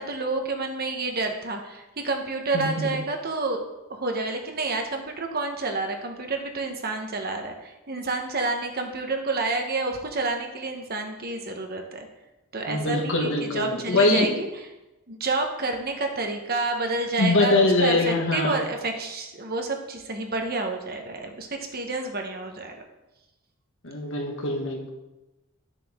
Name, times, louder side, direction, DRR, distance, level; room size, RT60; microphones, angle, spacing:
voice 1, 0.0-3.6 3.9-12.1 12.5-14.5 15.1-22.8, right 3 dB, 45° right, 4 dB, 1.2 m, -29 dB
voice 2, 2.5-3.0 12.7-14.3 17.2-18.6 23.8-24.9, left 2 dB, 65° left, 2 dB, 1.6 m, -23 dB
11.0 x 6.8 x 3.8 m, 1.0 s
head